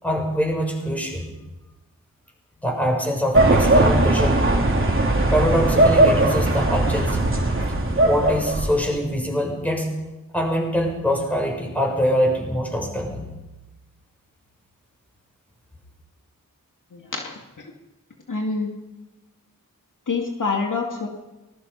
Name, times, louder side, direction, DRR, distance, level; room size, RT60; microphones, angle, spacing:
voice 1, 0.0-1.3 2.6-4.4 5.3-7.3 8.0-9.9 10.3-13.2, equal, 5° left, 0 dB, 7.0 m, -24 dB
sound 1, 3.3-8.9, right 2 dB, 35° right, 3.2 m, -19 dB
voice 2, 16.9-17.7 18.3-18.7 20.1-21.1, left 4 dB, 65° left, 2 dB, 2.5 m, -27 dB
24.0 x 20.5 x 5.8 m, 1.1 s
wide cardioid pair, 90°, 34 cm